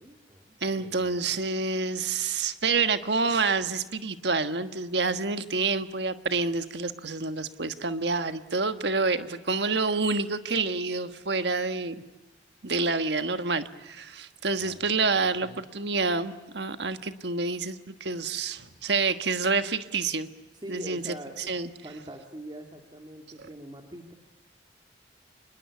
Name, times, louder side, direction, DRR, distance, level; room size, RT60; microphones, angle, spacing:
voice 1, 0.0-1.4 14.6-14.9 15.4-15.6 20.6-21.5 21.8-24.1, right 1 dB, 25° right, 4 dB, 2.4 m, -44 dB
voice 2, 0.6-11.9 12.6-20.3 20.7-21.0 21.5-21.7 23.4-23.5, right 4 dB, 65° right, 10 dB, 1.5 m, -28 dB
26.5 x 21.5 x 8.4 m, 1.1 s
head